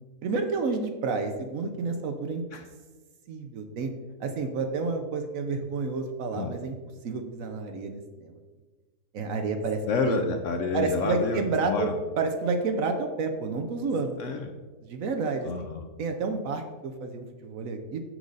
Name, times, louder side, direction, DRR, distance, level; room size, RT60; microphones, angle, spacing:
voice 1, 0.2-2.4 3.3-3.9 4.2-6.8 7.0-8.3 9.1-10.2 10.7-11.9 12.2-14.1 14.8-15.5 16.0-18.0, right 4 dB, 65° right, 5 dB, 1.0 m, -30 dB
voice 2, 9.9-11.9 14.2-14.5 15.4-15.9, left 4 dB, 65° left, 5 dB, 0.8 m, -29 dB
6.4 x 6.2 x 3.9 m, 1.3 s
omnidirectional pair, 1.7 m